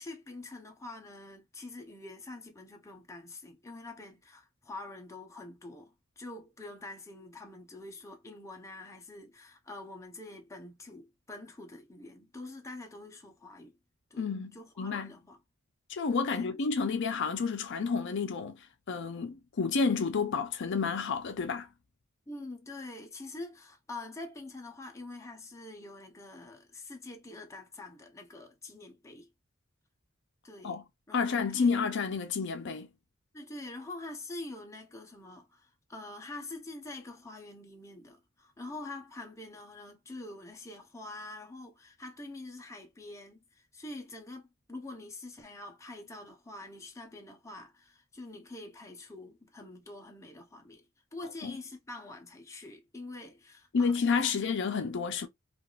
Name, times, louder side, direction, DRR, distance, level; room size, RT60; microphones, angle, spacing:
voice 1, 0.0-13.8 14.1-14.3 14.5-15.4 16.3-16.5 22.3-29.3 30.4-30.8 31.1-31.7 33.3-50.8 51.1-54.3, left 2 dB, 15° left, 0.6 m, -45 dB
voice 2, 14.2-15.1 15.9-21.7 30.6-30.8 31.1-32.9 51.4-51.5 53.7-55.3, left 5 dB, 60° left, 0.5 m, -30 dB
3.4 x 2.4 x 2.3 m
head